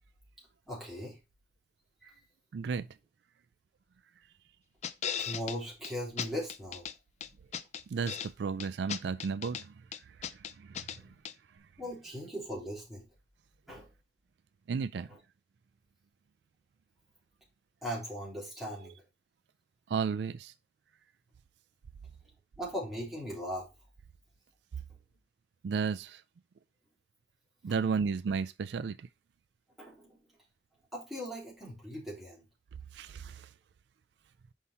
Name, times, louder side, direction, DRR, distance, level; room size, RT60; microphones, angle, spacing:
voice 1, 0.7-1.2 2.0-2.2 5.2-6.8 10.9-11.1 11.8-13.1 13.7-13.9 17.8-18.9 22.6-23.7 29.8-30.2 30.9-32.4, equal, ahead, 3.4 m, -39 dB
voice 2, 2.5-2.9 7.9-11.1 11.5-11.7 14.7-15.1 18.8-18.9 19.9-20.5 25.6-26.2 27.6-29.1 32.9-33.5, right 5 dB, 70° right, 0.3 m, -34 dB
sound 1, 4.8-5.6 5.8-5.9 6.2-6.9 7.2-8.3 8.6-9.6 9.9-11.0 11.2-11.3, left 8 dB, 40° left, 0.4 m, -37 dB
5.6 x 5.5 x 4.2 m
head